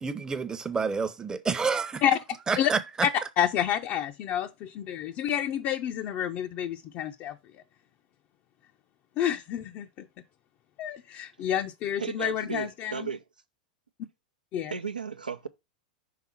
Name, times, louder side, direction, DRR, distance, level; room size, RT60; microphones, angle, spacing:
voice 1, 0.0-2.0 2.5-2.8, right 5 dB, 15° right, 0.8 m, -28 dB
voice 2, 3.4-7.6 9.2-10.1 10.8-13.1 14.5-14.7, left 10 dB, 40° left, 0.5 m, -29 dB
voice 3, 12.0-13.2 14.7-15.5, right 6 dB, 85° right, 0.6 m, -34 dB
5.8 x 3.6 x 5.8 m
figure-of-eight pair, 95°, 4 cm